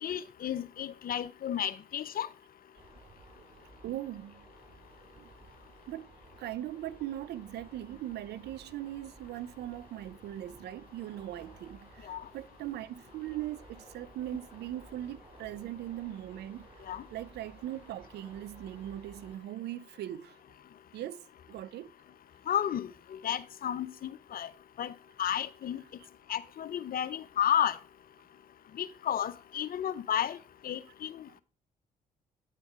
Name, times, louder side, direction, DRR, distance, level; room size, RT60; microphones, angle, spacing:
voice 1, 0.0-2.3 12.1-12.2 16.9-17.0 22.5-24.5 24.8-24.9 25.2-25.8 26.3-27.8 28.8-30.4 30.6-31.2, left 10 dB, 55° left, 0.7 m, -32 dB
sound 1, 2.8-19.4, right 2 dB, 30° right, 4.7 m, -56 dB
voice 2, 3.8-4.5 5.2-5.3 5.9-6.1 6.4-16.7 17.1-20.4 20.9-21.2 21.5-21.9 25.8-25.9, right 13 dB, 70° right, 0.5 m, -40 dB
9.4 x 4.3 x 4.7 m
hypercardioid pair, 50°, 18 cm